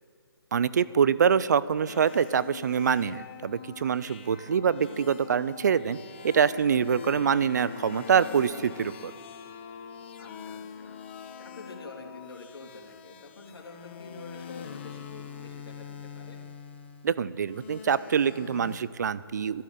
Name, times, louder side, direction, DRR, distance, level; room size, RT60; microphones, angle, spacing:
voice 1, 0.5-6.0 6.2-9.1 17.0-19.6, right 7 dB, 45° right, 18 dB, 0.5 m, -25 dB
sound 1, 1.9-18.8, left 7 dB, 30° left, 1.0 m, -44 dB
voice 2, 10.2-11.0 11.4-16.4, left 3 dB, 70° left, 0 dB, 3.5 m, -47 dB
12.0 x 12.0 x 9.2 m, 2.5 s
hypercardioid pair, 165°, 13 cm